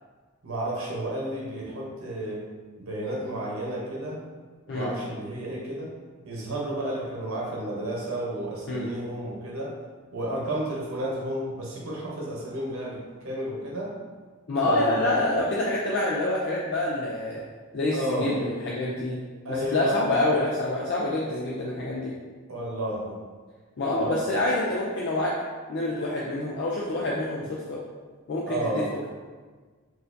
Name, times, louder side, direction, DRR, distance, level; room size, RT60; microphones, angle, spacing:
voice 1, 0.4-2.4 2.8-4.2 4.7-5.9 6.2-9.7 10.1-13.0 13.2-13.9 14.6-15.3 17.9-18.3 19.4-20.0 22.5-23.1 23.9-24.3 28.5-28.9, right 1 dB, 75° right, -4 dB, 0.8 m, -31 dB
voice 2, 14.5-17.4 17.7-19.2 19.5-22.1 23.8-25.3 25.7-27.8 28.3-29.1, left 2 dB, 50° left, -5 dB, 0.4 m, -27 dB
4.1 x 2.5 x 2.6 m, 1.4 s
head